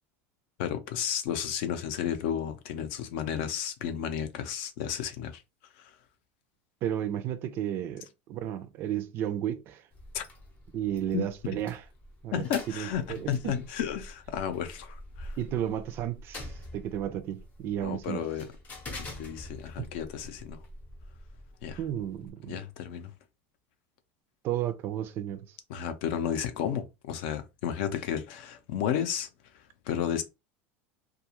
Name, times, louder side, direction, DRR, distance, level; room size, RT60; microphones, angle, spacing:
voice 1, 0.6-5.4 5.8-5.9 10.1-10.2 11.1-11.2 12.3-15.4 17.8-18.5 19.2-20.6 21.6-21.8 22.5-23.1 25.7-29.3 29.9-30.2, left 9 dB, 60° left, 0.6 m, -32 dB
voice 2, 6.8-9.8 10.7-11.8 12.2-13.5 15.4-18.3 19.8-19.9 21.8-22.6 24.4-25.6, right 11 dB, 35° right, 0.4 m, -33 dB
sound 1, 9.9-22.3, left 1 dB, 25° left, 0.7 m, -46 dB
2.4 x 2.3 x 2.9 m
supercardioid pair, 160°, 7 cm